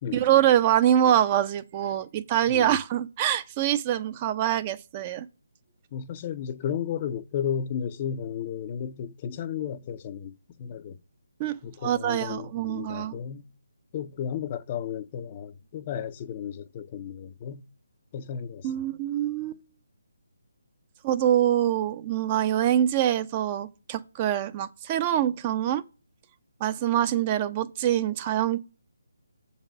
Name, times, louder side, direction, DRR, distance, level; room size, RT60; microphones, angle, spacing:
voice 1, 0.1-5.3 11.4-13.2 18.6-19.6 21.0-25.8 26.6-28.6, right 11 dB, 25° right, 0.5 m, -25 dB
voice 2, 5.9-11.0 11.6-13.4 13.9-17.6 18.1-18.9, left 8 dB, 30° left, 0.5 m, -34 dB
7.1 x 4.1 x 6.0 m
figure-of-eight pair, 150°, 0 cm